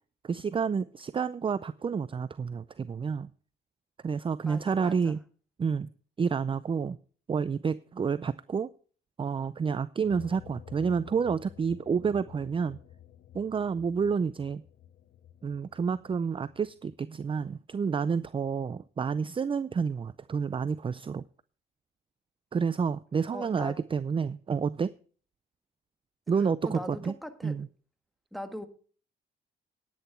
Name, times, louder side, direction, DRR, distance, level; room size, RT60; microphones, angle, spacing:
voice 1, 0.2-3.3 4.0-5.2 5.6-5.9 6.2-7.0 7.3-8.7 9.2-12.8 13.3-14.6 15.4-21.2 22.5-24.9 26.3-27.1 27.4-27.7, right 6 dB, 25° right, 0.5 m, -29 dB
voice 2, 4.4-5.1 23.3-23.8 26.6-27.5 28.3-28.7, equal, ahead, 1.6 m, -40 dB
sound 1, 10.0-17.0, left 10 dB, 60° left, 0.9 m, -51 dB
10.5 x 10.0 x 4.4 m
cardioid pair, 90°, 20 cm